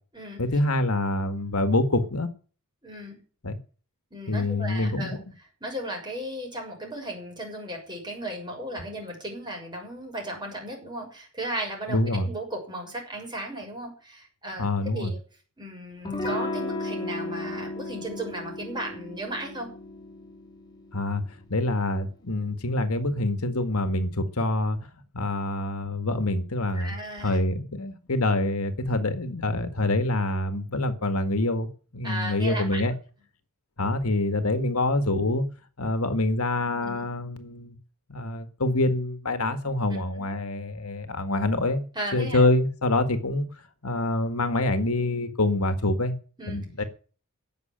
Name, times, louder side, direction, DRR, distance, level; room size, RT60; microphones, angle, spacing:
voice 1, 0.4-2.3 3.4-3.6 4.3-5.2 11.9-12.3 14.6-15.1 20.9-21.2 21.5-24.8 25.1-26.9 27.2-32.9 33.8-35.4 35.8-37.8 38.1-41.8 42.1-43.5 43.8-46.1 46.5-46.8, left 2 dB, 80° left, 9 dB, 1.8 m, -26 dB
voice 2, 2.8-3.2 4.1-5.1 5.6-14.7 14.9-15.2 15.6-19.7 26.7-27.4 32.0-32.8 36.7-37.1 39.9-40.2 41.9-42.5 46.4-46.6, right 1 dB, 20° right, 1 dB, 6.5 m, -36 dB
Electric guitar / Strum, 16.0-21.4, left 2 dB, 20° left, 3.1 m, -35 dB
15.5 x 6.8 x 9.0 m, 0.39 s
head